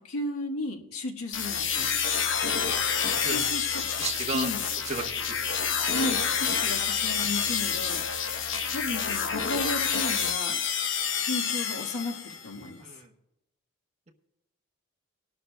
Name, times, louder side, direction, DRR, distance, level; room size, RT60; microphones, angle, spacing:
voice 1, 0.0-1.9 3.2-3.8 4.3-4.6 5.9-8.0 8.7-10.6 11.2-12.8, left 2 dB, 90° left, 1 dB, 1.5 m, -34 dB
sound 1, 1.3-12.5, left 7 dB, 60° left, 0.9 m, -28 dB
voice 2, 4.0-4.5 4.8-5.5 12.8-13.1, right 4 dB, 30° right, 1 dB, 1.1 m, -34 dB
19.5 x 12.0 x 2.3 m, 0.92 s
head